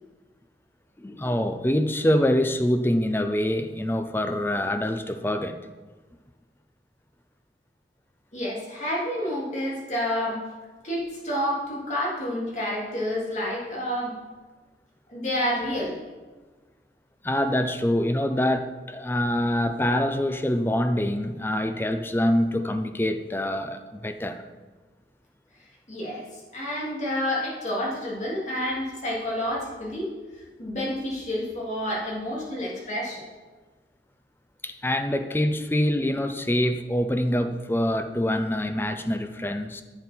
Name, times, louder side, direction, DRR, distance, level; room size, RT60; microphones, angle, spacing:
voice 1, 1.0-5.6 17.2-24.5 34.6-39.8, left 1 dB, 10° left, 8 dB, 0.5 m, -25 dB
voice 2, 8.3-10.4 10.8-14.2 15.1-16.0 25.9-30.1 30.6-33.2, left 1 dB, 40° left, -5 dB, 2.9 m, -29 dB
10.5 x 7.9 x 4.5 m, 1.3 s
head